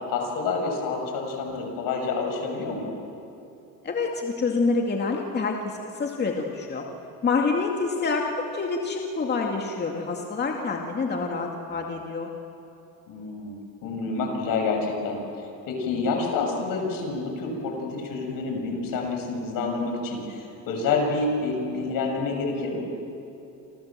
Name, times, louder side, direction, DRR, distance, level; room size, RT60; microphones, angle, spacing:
voice 1, 0.1-2.9 13.1-13.6 13.8-15.2 15.6-22.8, left 4 dB, 70° left, 2 dB, 7.0 m, -28 dB
voice 2, 3.8-6.8 7.2-8.3 8.5-12.3, left 4 dB, 30° left, 1 dB, 2.4 m, -27 dB
28.5 x 27.5 x 7.6 m, 2.8 s
cardioid pair, 130°, 35 cm